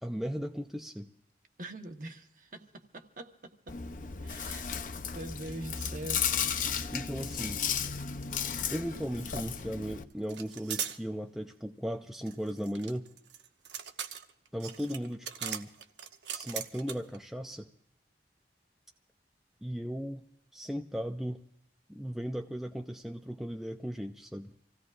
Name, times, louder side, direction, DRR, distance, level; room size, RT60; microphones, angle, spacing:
voice 1, 0.0-1.1 6.9-7.7 8.7-13.1 14.5-15.7 16.3-17.7 19.6-20.2 20.5-21.4 21.9-24.5, equal, ahead, 4 dB, 0.5 m, -37 dB
voice 2, 1.6-3.7 4.2-4.7 5.1-6.8, right 1 dB, 45° right, 5 dB, 1.3 m, -44 dB
Chewing mastication, 3.7-10.0, left 7 dB, 45° left, 0.6 m, -34 dB
sound 1, 8.4-8.6 8.9-9.6 10.3-11.0 12.3-17.2, right 9 dB, 80° right, 0.9 m, -40 dB
27.0 x 16.5 x 2.5 m, 0.74 s
head